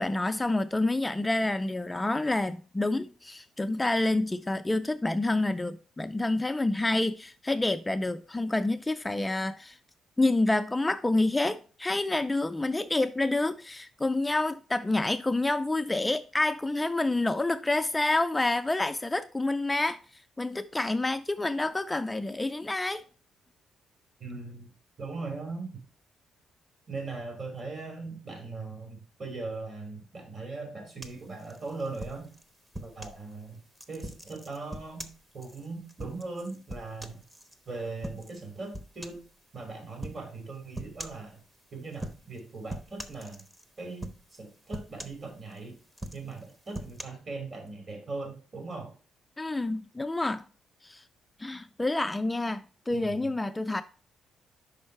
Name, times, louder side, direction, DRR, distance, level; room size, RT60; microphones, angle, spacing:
voice 1, 0.0-9.8 10.2-20.0 20.4-23.0 49.4-50.4 50.8-51.0 51.4-53.8, left 2 dB, 15° left, 0.3 m, -28 dB
voice 2, 24.2-24.7 25.0-25.7 26.9-32.3 32.8-33.6 33.9-35.1 35.3-37.2 37.7-39.2 39.5-41.4 41.7-43.4 43.8-45.8 46.1-48.9 52.9-53.3, right 3 dB, 45° right, 3.0 m, -39 dB
sound 1, 31.0-33.2 33.8-37.6 38.0-38.4 38.7-39.3 40.0-40.3 40.8-41.3 41.9-42.4 42.7-43.7 44.0-44.4 44.7-45.6 45.9-47.0, right 1 dB, 15° right, 0.9 m, -42 dB
5.4 x 5.2 x 4.6 m
cardioid pair, 90°, 0 cm